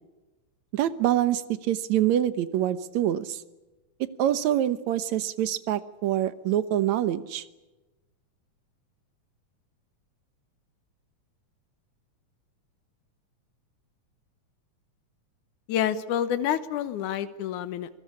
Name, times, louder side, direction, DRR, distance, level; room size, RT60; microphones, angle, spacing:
voice 1, 0.7-3.4 4.0-7.4, right 11 dB, 70° right, 14 dB, 2.2 m, -25 dB
voice 2, 15.7-17.9, left 10 dB, 90° left, 12 dB, 2.5 m, -28 dB
27.5 x 18.5 x 8.6 m, 1.1 s
omnidirectional pair, 3.4 m